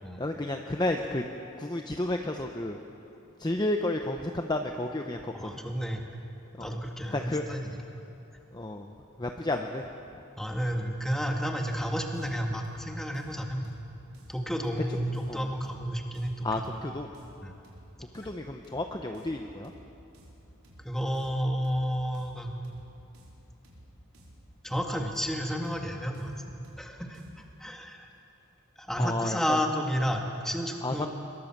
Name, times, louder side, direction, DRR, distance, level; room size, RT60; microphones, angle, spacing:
voice 1, 0.2-1.2 1.6-2.8 3.4-5.5 6.6-6.8 7.1-7.4 8.5-8.9 9.2-9.8 15.3-15.5 16.4-17.1 18.0-19.7 29.0-29.6 30.8-31.0, left 1 dB, 20° left, 3 dB, 0.8 m, -32 dB
voice 2, 5.3-6.0 6.6-8.0 10.4-13.8 14.3-16.7 17.4-17.6 20.8-22.5 24.6-28.1 28.8-31.1, equal, ahead, 1 dB, 2.0 m, -31 dB
sound 1, 11.6-27.5, equal, 80° right, 4.6 m, -54 dB
23.0 x 22.5 x 7.4 m, 2.8 s
head